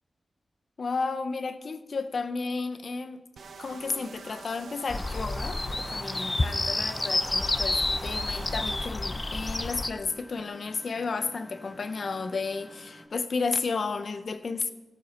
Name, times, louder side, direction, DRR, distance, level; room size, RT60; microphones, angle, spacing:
voice 1, 0.8-3.2 3.6-14.7, left 4 dB, 70° left, 10 dB, 0.9 m, -32 dB
sound 1, 3.4-8.9, right 5 dB, 90° right, 0.7 m, -45 dB
sound 2, 4.9-9.9, left 2 dB, 35° left, 0.9 m, -29 dB
Engine, 5.4-13.1, left 1 dB, 10° left, 1.9 m, -50 dB
13.5 x 9.1 x 6.6 m, 1.0 s
cardioid pair, 50°, 0 cm